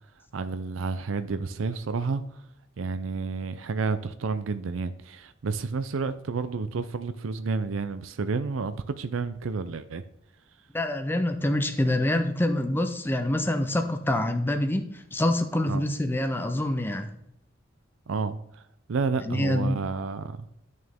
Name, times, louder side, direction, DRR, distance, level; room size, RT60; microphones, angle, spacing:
voice 1, 0.3-2.2 2.8-10.0 15.7-15.8 18.1-18.6 18.9-20.5, right 4 dB, 75° right, 12 dB, 0.5 m, -30 dB
voice 2, 10.7-17.1 19.3-19.8, left 1 dB, 10° left, 6 dB, 0.5 m, -26 dB
11.0 x 6.5 x 3.5 m, 0.81 s
head